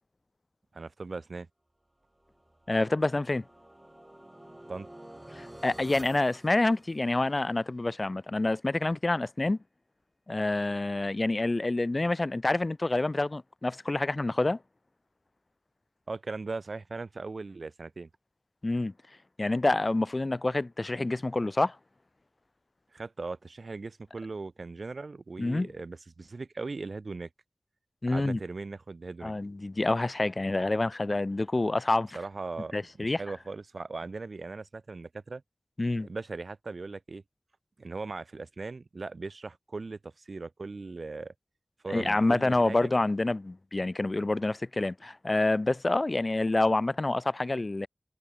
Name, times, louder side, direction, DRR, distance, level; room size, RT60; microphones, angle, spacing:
voice 1, 0.7-1.5 4.7-4.9 16.1-18.1 22.9-27.3 28.1-29.3 32.1-35.4 36.0-37.2 37.8-41.3 41.8-42.9, right 3 dB, 75° right, 3.4 m, -39 dB
sound 1, 2.2-7.4, right 1 dB, 20° right, 5.8 m, -50 dB
voice 2, 2.7-3.4 5.3-9.6 10.3-14.6 18.6-18.9 19.4-21.8 25.4-25.7 28.0-28.4 29.2-32.2 32.7-33.2 35.8-36.1 41.9-47.9, left 2 dB, 45° left, 2.2 m, -27 dB
wide cardioid pair, 60°, 0 cm